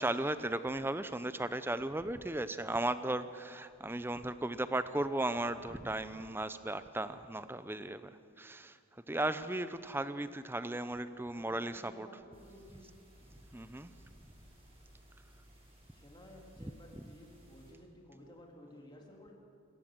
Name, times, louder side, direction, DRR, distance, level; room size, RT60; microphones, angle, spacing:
voice 1, 0.0-8.1 8.4-8.8 9.1-12.1 13.5-13.9, right 1 dB, 10° right, 12 dB, 0.6 m, -36 dB
voice 2, 11.3-12.9 15.9-19.3, left 1 dB, 20° left, 0 dB, 2.8 m, -55 dB
sound 1, 12.3-17.7, equal, 25° right, 6.2 m, -59 dB
26.5 x 14.5 x 7.6 m, 2.3 s
head